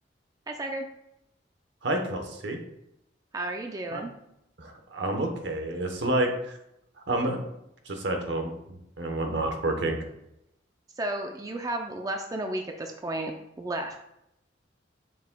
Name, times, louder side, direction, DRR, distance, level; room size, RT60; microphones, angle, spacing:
voice 1, 0.5-0.9 3.3-4.1 11.0-13.3 13.6-14.0, right 1 dB, 20° right, 3 dB, 0.4 m, -32 dB
voice 2, 1.8-2.6 3.9-4.0 4.6-6.5 7.1-7.4 7.9-8.5 9.0-10.0, right 1 dB, 65° right, 4 dB, 1.0 m, -29 dB
7.0 x 6.1 x 2.2 m, 0.82 s
head